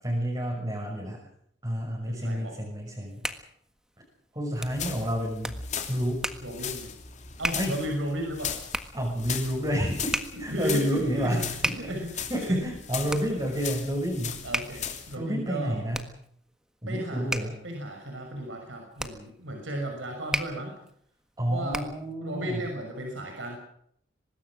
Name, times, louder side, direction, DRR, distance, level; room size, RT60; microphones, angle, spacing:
voice 1, 0.0-1.2 1.6-3.2 4.3-5.6 5.9-6.3 7.5-7.7 8.9-11.9 12.3-14.4 15.1-16.0 16.8-17.6 21.4-22.6, equal, 25° right, -3 dB, 6.4 m, -29 dB
voice 2, 2.1-2.5 6.4-6.9 7.4-8.6 10.3-12.6 13.0-13.2 14.4-15.8 16.9-20.8 21.5-21.9 22.2-23.6, equal, 85° right, 2 dB, 6.0 m, -35 dB
Hands, 2.8-22.1, right 1 dB, 5° right, 1.6 m, -37 dB
sound 1, 4.5-15.2, left 7 dB, 40° left, 3.0 m, -38 dB
24.5 x 20.0 x 6.3 m, 0.68 s
head